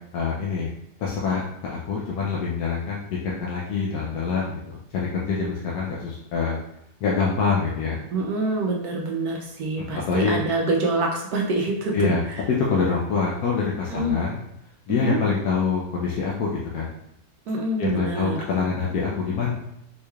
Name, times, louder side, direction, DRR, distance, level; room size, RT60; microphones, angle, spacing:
voice 1, 0.1-0.7 1.0-6.6 7.0-8.0 9.8-10.4 11.9-12.2 12.5-14.4 14.9-16.9 17.8-19.5, left 5 dB, 70° left, -4 dB, 1.1 m, -25 dB
voice 2, 8.1-12.4 13.9-14.2 15.0-15.2 17.5-18.4, right 2 dB, 70° right, 0 dB, 1.0 m, -26 dB
4.5 x 3.1 x 2.3 m, 0.80 s
omnidirectional pair, 1.8 m